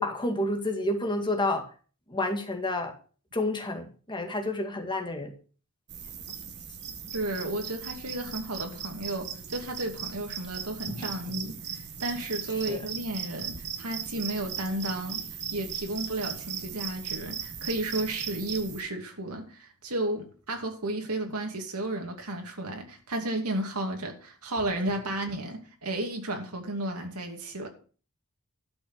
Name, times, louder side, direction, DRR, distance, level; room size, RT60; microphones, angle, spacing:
voice 1, 0.0-1.6 2.1-2.9 3.3-5.3 10.9-11.1 12.7-12.9, left 1 dB, 20° left, 2.1 m, -29 dB
sound 1, 5.9-18.8, right 8 dB, 50° right, 1.7 m, -38 dB
voice 2, 7.1-15.2 15.5-27.7, right 1 dB, 85° right, 2.7 m, -33 dB
11.5 x 6.1 x 6.6 m
head